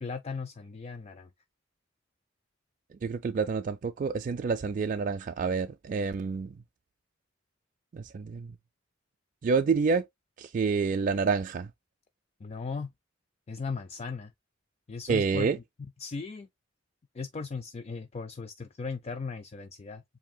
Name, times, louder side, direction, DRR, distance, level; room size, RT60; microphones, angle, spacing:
voice 1, 0.0-1.3 12.4-12.9 13.5-14.3 14.9-15.6 16.0-16.5 17.1-20.0, left 4 dB, 35° left, 0.4 m, -37 dB
voice 2, 3.0-6.6 7.9-8.6 9.4-10.1 10.4-11.7 15.1-15.6, right 5 dB, 40° right, 0.3 m, -28 dB
7.3 x 2.7 x 2.2 m
head